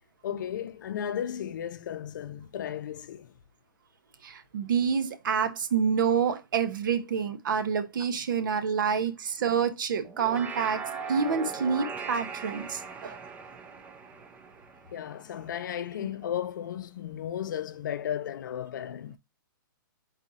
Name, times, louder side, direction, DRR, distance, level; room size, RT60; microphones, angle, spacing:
voice 1, 0.2-3.3 14.9-19.2, left 9 dB, 65° left, 0.5 m, -34 dB
voice 2, 4.2-10.8 11.1-13.2, right 6 dB, 65° right, 0.7 m, -27 dB
sound 1, 10.0-15.6, right 5 dB, 10° right, 0.4 m, -39 dB
4.1 x 2.7 x 4.7 m
hypercardioid pair, 155°, 11 cm